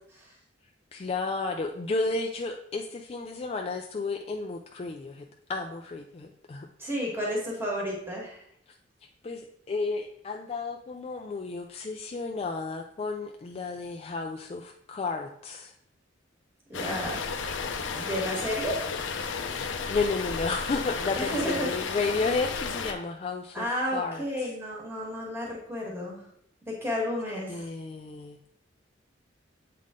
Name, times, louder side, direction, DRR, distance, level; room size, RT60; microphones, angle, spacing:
voice 1, 0.9-6.7 9.2-15.7 19.6-23.7 23.9-24.5 27.5-28.5, left 3 dB, 30° left, 2 dB, 0.3 m, -32 dB
voice 2, 6.8-8.4 16.7-17.2 17.9-18.9 21.1-21.7 23.5-26.2 26.7-27.7, equal, 10° right, -3 dB, 1.6 m, -32 dB
sound 1, 16.7-22.9, left 5 dB, 80° left, 0.6 m, -33 dB
7.5 x 3.7 x 3.7 m, 0.70 s
head